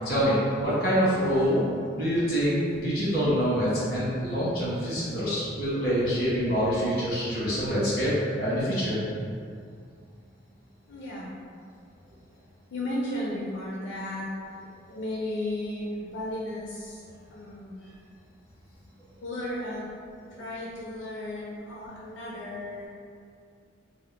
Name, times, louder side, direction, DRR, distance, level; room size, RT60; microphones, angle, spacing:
voice 1, 0.0-1.7 1.9-9.0 14.9-15.0, equal, 50° left, -9 dB, 1.1 m, -26 dB
voice 2, 10.9-11.3 12.7-14.6 14.9-17.0 17.3-17.9 19.2-19.9 20.3-22.9, left 1 dB, 85° left, -5 dB, 0.4 m, -34 dB
2.8 x 2.0 x 3.4 m, 2.3 s
head